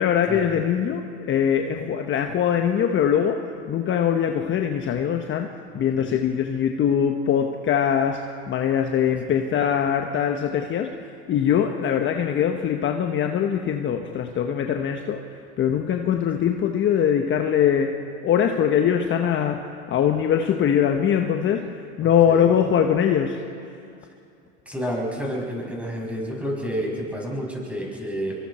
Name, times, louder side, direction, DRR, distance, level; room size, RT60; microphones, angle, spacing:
voice 1, 0.0-18.0 18.2-23.4, left 8 dB, 35° left, 4 dB, 1.3 m, -22 dB
voice 2, 24.6-28.4, equal, 5° right, -3 dB, 6.9 m, -30 dB
28.0 x 23.5 x 4.4 m, 2.5 s
hypercardioid pair, 105°, 33 cm